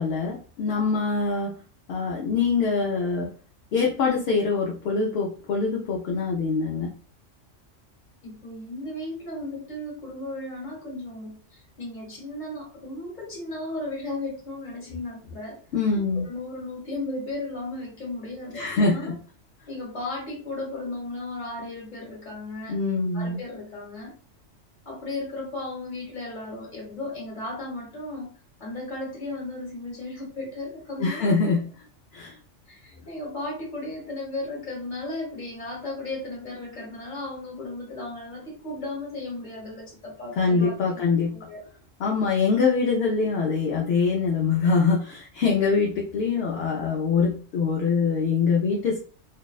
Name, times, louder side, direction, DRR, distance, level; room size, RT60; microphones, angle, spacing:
voice 1, 0.0-1.5 1.9-3.3 3.7-6.9 15.7-16.3 18.5-19.2 22.7-23.4 31.0-31.7 32.1-32.3 40.4-41.3 42.0-49.0, left 4 dB, 65° left, -2 dB, 0.7 m, -24 dB
voice 2, 8.2-15.6 15.9-19.1 19.7-22.8 23.1-24.1 24.8-28.3 28.6-31.6 32.7-41.6, left 2 dB, 40° left, -2 dB, 1.2 m, -35 dB
2.6 x 2.1 x 2.3 m, 0.41 s
omnidirectional pair, 1.3 m